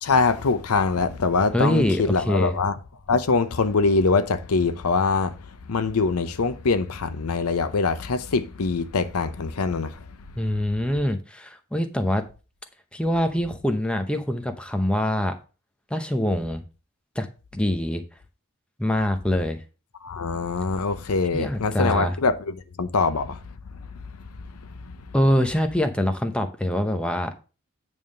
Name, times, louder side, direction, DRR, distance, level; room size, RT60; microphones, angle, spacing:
voice 1, 0.0-2.8 3.1-10.1 20.0-23.5 23.8-25.0, left 4 dB, 90° left, 0.7 m, -24 dB
voice 2, 1.5-2.5 10.4-12.2 12.9-15.3 15.9-16.6 17.2-17.3 17.5-18.0 18.8-19.6 21.3-22.1 25.1-27.3, equal, 5° left, 0.7 m, -24 dB
9.2 x 3.6 x 6.4 m
head